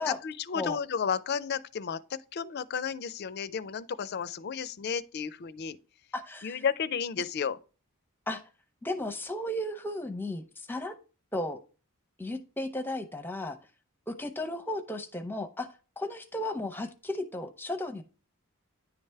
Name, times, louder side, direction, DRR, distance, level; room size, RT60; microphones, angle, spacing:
voice 1, 0.0-5.8 6.4-7.6, left 6 dB, 45° left, 0.4 m, -33 dB
voice 2, 6.1-6.6 8.3-8.4 8.8-10.9 11.3-11.6 12.2-13.6 14.1-15.7 16.0-18.0, left 1 dB, 10° left, 0.6 m, -34 dB
9.8 x 3.3 x 4.5 m
head